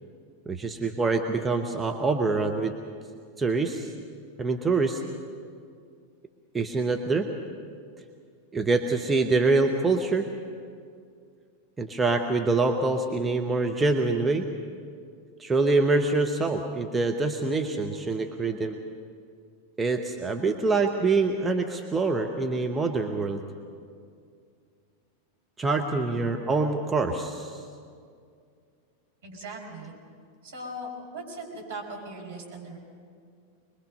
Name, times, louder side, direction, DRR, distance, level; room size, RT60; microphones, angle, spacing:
voice 1, 0.5-2.7 3.4-3.9 4.4-5.0 6.5-7.3 8.5-10.3 11.8-14.5 15.4-18.8 19.8-23.4 25.6-27.6, right 3 dB, 15° right, 3 dB, 1.1 m, -25 dB
voice 2, 29.2-29.9 30.4-32.8, right 1 dB, 65° right, -1 dB, 5.1 m, -39 dB
24.5 x 21.5 x 5.5 m, 2.2 s
figure-of-eight pair, 90°, 0 cm